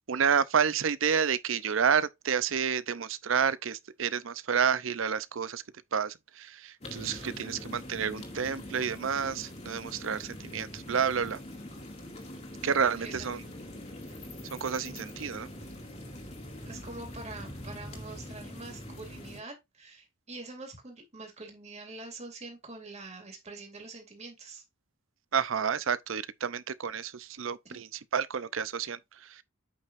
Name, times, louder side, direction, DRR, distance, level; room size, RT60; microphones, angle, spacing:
voice 1, 0.1-5.6 5.9-11.4 12.6-13.4 14.5-15.5 25.3-27.9 28.1-29.4, right 7 dB, 70° right, 0.6 m, -30 dB
sound 1, 6.8-19.4, left 1 dB, 30° left, 2.1 m, -43 dB
voice 2, 7.2-7.5 13.0-13.5 16.6-24.6 27.6-27.8, right 3 dB, 35° right, 2.6 m, -45 dB
8.3 x 5.7 x 2.5 m
head